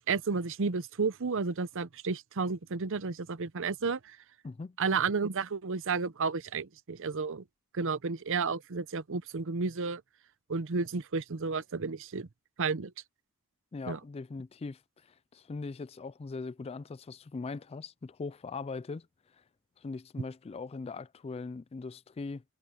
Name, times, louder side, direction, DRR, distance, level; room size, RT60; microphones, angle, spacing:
voice 1, 0.0-4.2 4.8-7.4 7.7-10.0 10.5-12.3 12.6-12.9 13.9-14.0, right 4 dB, 60° right, 0.7 m, -32 dB
voice 2, 4.4-4.8 13.7-19.1 19.8-22.4, left 4 dB, 25° left, 0.3 m, -40 dB
head